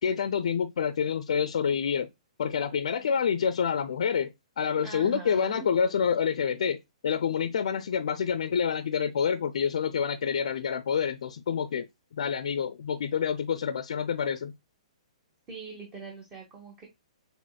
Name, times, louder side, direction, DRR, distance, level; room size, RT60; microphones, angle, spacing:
voice 1, 0.0-2.1 2.4-4.3 4.6-6.8 7.0-14.5, left 7 dB, 65° left, 0.4 m, -27 dB
voice 2, 4.8-5.6 15.5-16.8, right 5 dB, 20° right, 1.4 m, -42 dB
6.2 x 3.4 x 2.2 m
hypercardioid pair, 125°, 4 cm